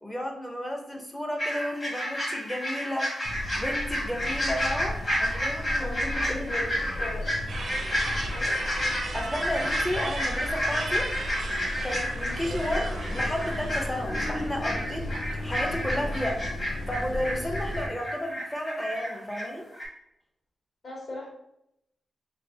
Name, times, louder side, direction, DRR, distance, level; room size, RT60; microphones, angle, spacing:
voice 1, 0.0-3.1 3.5-6.5 9.1-11.0 11.8-15.0 15.3-16.3 16.9-19.7, equal, 10° left, 2 dB, 0.5 m, -32 dB
sound 1, 1.4-19.5 19.7-19.8, equal, 40° left, 1.4 m, -31 dB
sound 2, 3.2-17.9, left 1 dB, 80° left, 0.6 m, -35 dB
voice 2, 5.8-7.3 8.3-8.6 15.9-16.4 20.8-21.3, left 1 dB, 60° left, -5 dB, 1.5 m, -39 dB
sound 3, 7.5-13.9, right 3 dB, 60° right, 0.4 m, -38 dB
3.5 x 3.3 x 2.6 m, 0.80 s
wide cardioid pair, 110°, 0 cm